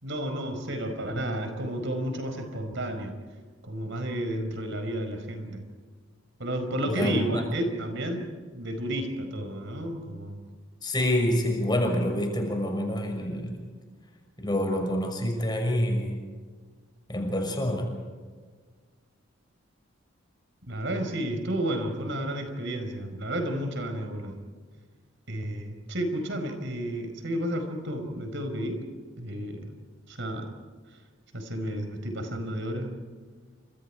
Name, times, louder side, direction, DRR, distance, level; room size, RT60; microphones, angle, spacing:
voice 1, 0.0-3.1 3.6-5.6 6.4-10.4 20.7-24.4 25.3-28.8 29.2-29.7 30.1-30.5 31.3-32.9, right 1 dB, 60° right, 6 dB, 5.0 m, -31 dB
voice 2, 6.8-7.4 10.8-13.5 14.4-16.2 17.1-17.9, left 1 dB, 20° left, 3 dB, 6.0 m, -27 dB
29.5 x 27.0 x 4.8 m, 1.5 s
head